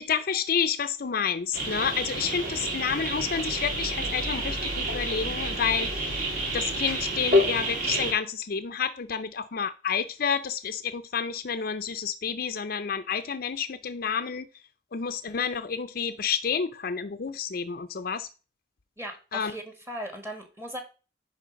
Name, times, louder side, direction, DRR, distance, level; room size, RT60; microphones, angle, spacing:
voice 1, 0.0-6.2 6.5-14.5 14.9-18.3 19.3-19.5, left 7 dB, 55° left, 0.6 m, -29 dB
sound 1, 1.5-8.1, equal, 50° right, 2.8 m, -28 dB
voice 2, 19.0-20.8, equal, 15° right, 1.6 m, -38 dB
10.0 x 3.5 x 5.1 m
head